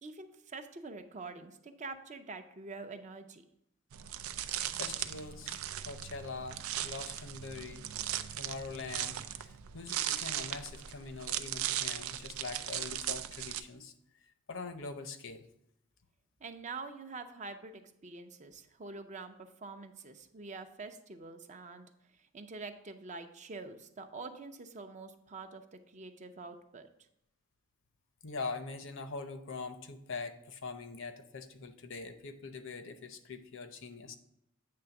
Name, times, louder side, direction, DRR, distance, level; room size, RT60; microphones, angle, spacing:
voice 1, 0.0-3.4 16.4-21.9 22.3-26.9, right 3 dB, 35° right, 7 dB, 0.6 m, -46 dB
sound 1, 3.9-13.6, right 11 dB, 90° right, 0.4 m, -38 dB
voice 2, 4.8-5.6 5.9-7.9 8.4-13.9 14.5-15.5 28.2-34.1, left 4 dB, 65° left, 9 dB, 0.7 m, -43 dB
8.6 x 3.5 x 5.8 m, 0.77 s
head